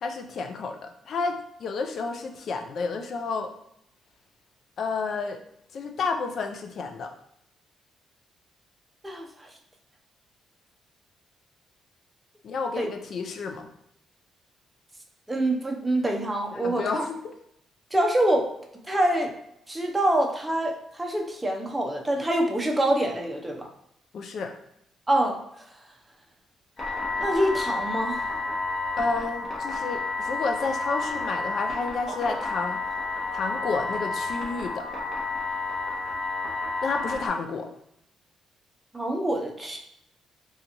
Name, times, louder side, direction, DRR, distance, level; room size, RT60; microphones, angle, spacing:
voice 1, 0.0-3.5 4.8-5.4 5.7-7.1 12.4-13.7 16.5-17.3 24.1-24.6 29.0-32.8 33.3-34.9 36.8-37.7, left 4 dB, 60° left, 5 dB, 0.5 m, -30 dB
voice 2, 9.0-9.5 12.8-12.9 15.3-16.9 17.9-18.5 18.9-19.3 19.7-23.7 25.1-25.4 27.2-28.2 38.9-39.8, right 1 dB, 15° right, 1 dB, 0.6 m, -25 dB
sound 1, 26.8-37.3, left 3 dB, 25° left, 1.2 m, -31 dB
3.8 x 2.4 x 2.9 m, 0.75 s
cardioid pair, 90°, 0 cm